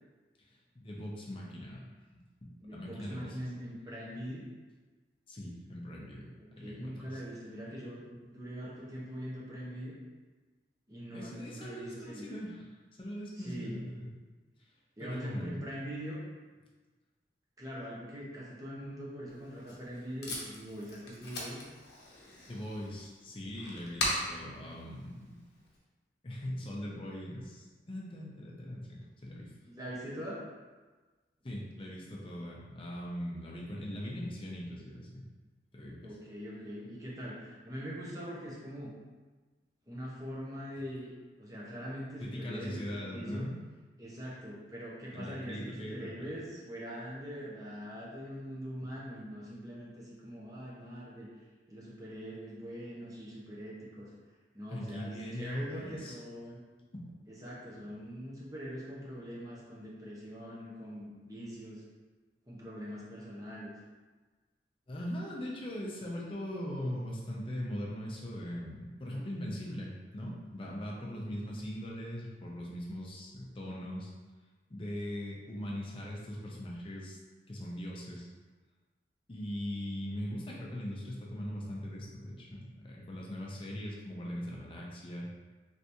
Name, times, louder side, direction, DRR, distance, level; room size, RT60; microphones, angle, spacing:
voice 1, 0.7-1.8 2.1-3.4 5.3-6.3 6.6-7.2 11.1-12.7 13.0-14.1 15.0-15.5 22.5-25.4 26.2-29.5 31.4-35.3 35.7-36.0 42.2-43.5 45.1-46.3 54.7-56.2 56.9-57.1 64.9-74.1 74.7-77.2 77.5-78.3 79.3-85.3, equal, 30° left, -3 dB, 0.6 m, -40 dB
voice 2, 2.6-4.4 6.4-10.0 10.9-12.3 13.4-13.8 15.0-16.2 17.6-21.6 29.6-30.4 36.0-38.9 39.9-41.1 41.4-43.4 44.0-51.3 51.7-54.1 54.5-56.6 57.3-61.8 62.5-63.7, equal, 20° right, -6 dB, 0.7 m, -43 dB
Packing tape duct tape, 19.3-25.8, left 1 dB, 65° left, 0.7 m, -40 dB
3.3 x 2.9 x 2.6 m, 1.3 s
head